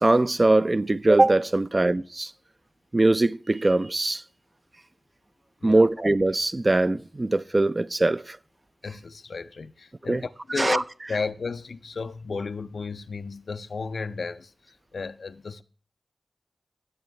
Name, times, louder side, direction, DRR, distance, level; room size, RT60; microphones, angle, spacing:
voice 1, 0.0-2.3 2.9-4.2 5.6-8.4 10.1-10.2 10.6-10.8, right 2 dB, 40° right, 0.4 m, -21 dB
voice 2, 8.8-15.6, left 4 dB, 75° left, 0.4 m, -34 dB
18.0 x 6.9 x 3.2 m
cardioid pair, 40°, 0 cm